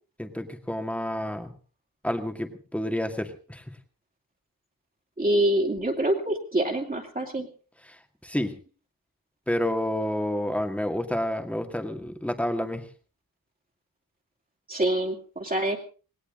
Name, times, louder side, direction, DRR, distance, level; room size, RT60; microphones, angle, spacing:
voice 1, 0.2-1.5 2.0-3.8 7.9-8.5 9.5-12.9, left 1 dB, 5° left, 6 dB, 2.1 m, -29 dB
voice 2, 5.2-7.5 14.7-15.8, right 1 dB, 25° right, 0 dB, 2.7 m, -25 dB
19.5 x 18.0 x 3.9 m, 0.37 s
wide cardioid pair, 150°, 36 cm